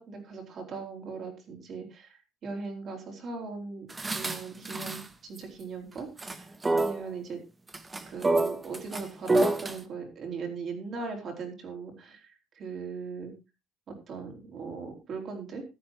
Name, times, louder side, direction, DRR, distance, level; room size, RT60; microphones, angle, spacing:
voice 1, 0.0-6.5 6.7-7.4 8.1-13.3 13.9-15.6, right 4 dB, 35° right, 2 dB, 4.2 m, -39 dB
sound 1, 3.9-5.0 5.4-5.5 6.0-6.4 6.6-7.0 7.7-9.8, right 2 dB, 15° right, 1.1 m, -27 dB
15.0 x 13.0 x 2.9 m, 0.26 s
cardioid pair, 170°, 0 cm